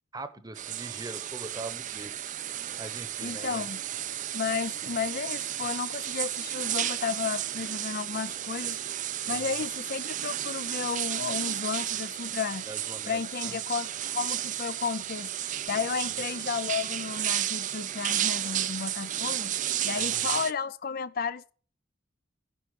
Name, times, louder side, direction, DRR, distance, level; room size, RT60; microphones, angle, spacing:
voice 1, 0.1-2.1 2.8-3.7 9.2-9.5 12.6-13.5 19.9-20.4, right 2 dB, 20° right, 0.9 m, -42 dB
sound 1, 0.6-20.5, right 12 dB, 40° right, 0.4 m, -33 dB
voice 2, 3.2-3.8 4.3-9.0 9.3-12.6 13.1-21.5, left 6 dB, 50° left, 0.4 m, -33 dB
9.9 x 5.7 x 7.6 m
head